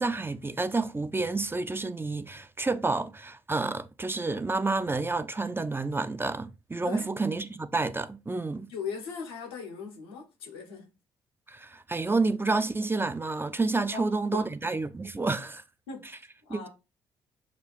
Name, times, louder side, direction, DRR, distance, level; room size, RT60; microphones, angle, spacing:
voice 1, 0.0-8.7 11.5-15.6 16.5-16.7, right 3 dB, 15° right, 0.5 m, -29 dB
voice 2, 8.7-10.9 13.9-14.5 15.9-16.7, left 5 dB, 85° left, 1.0 m, -39 dB
6.6 x 2.4 x 3.4 m
hypercardioid pair, 45°, 13 cm